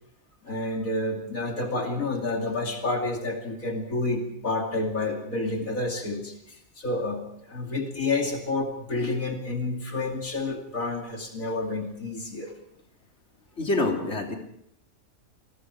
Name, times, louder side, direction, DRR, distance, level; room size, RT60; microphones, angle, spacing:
voice 1, 0.4-12.5, left 2 dB, 80° left, 1 dB, 3.2 m, -29 dB
voice 2, 13.6-14.4, left 2 dB, 55° left, 1 dB, 3.4 m, -26 dB
29.0 x 20.5 x 4.9 m, 0.73 s
omnidirectional pair, 1.4 m